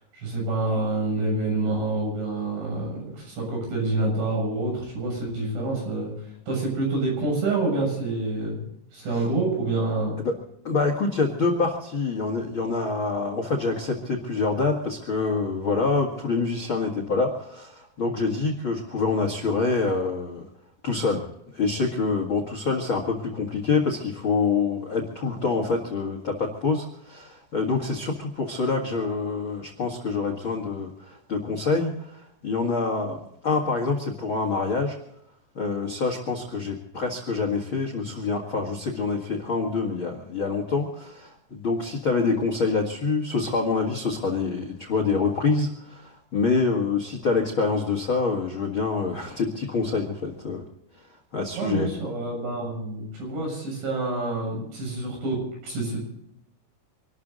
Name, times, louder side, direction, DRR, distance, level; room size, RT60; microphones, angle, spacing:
voice 1, 0.1-6.1 6.5-8.6 8.9-10.1 51.5-55.4 55.6-56.1, right 2 dB, 65° right, -1 dB, 9.6 m, -27 dB
voice 2, 10.6-20.5 20.8-21.2 21.5-33.2 33.4-34.9 35.5-50.6 51.3-51.9, left 4 dB, 90° left, 4 dB, 1.1 m, -26 dB
26.5 x 12.5 x 4.0 m, 0.77 s
omnidirectional pair, 5.8 m